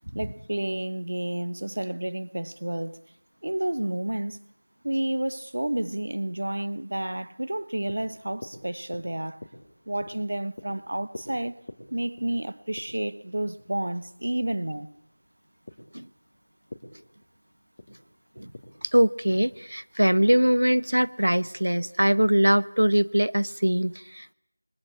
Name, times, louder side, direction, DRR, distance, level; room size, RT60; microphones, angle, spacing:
voice 1, 0.1-3.0 3.4-4.4 4.8-9.4 9.9-11.6 11.9-14.9, right 1 dB, 45° right, 1.2 m, -30 dB
sound 1, 7.5-22.1, left 2 dB, 20° left, 3.0 m, -49 dB
voice 2, 18.9-24.3, equal, 80° right, 1.1 m, -22 dB
27.5 x 24.5 x 8.5 m
figure-of-eight pair, 175°, 0 cm